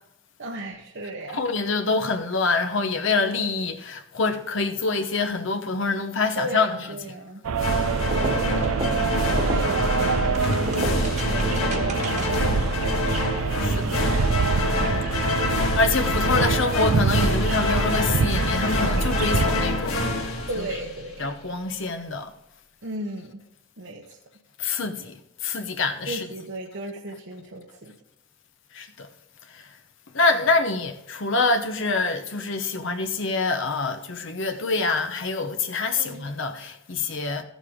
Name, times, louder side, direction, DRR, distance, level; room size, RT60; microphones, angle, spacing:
voice 1, 0.4-1.5 6.4-7.4 8.1-13.2 14.9-15.1 20.5-21.3 22.8-23.4 23.8-24.2 26.1-27.9 30.3-30.4 36.0-36.3, right 2 dB, 60° right, 1.0 m, -35 dB
voice 2, 1.3-7.0 13.6-13.8 15.8-19.9 20.5-20.8 21.2-22.3 24.6-25.1 25.4-26.2 28.8-28.9 30.1-37.4, left 3 dB, 60° left, 0.9 m, -25 dB
sound 1, 7.4-19.5, right 5 dB, 85° right, 0.5 m, -26 dB
sound 2, 7.6-21.2, left 2 dB, 80° left, 1.7 m, -26 dB
sound 3, 8.0-12.6, right 1 dB, 35° right, 1.4 m, -33 dB
15.0 x 7.3 x 3.7 m
head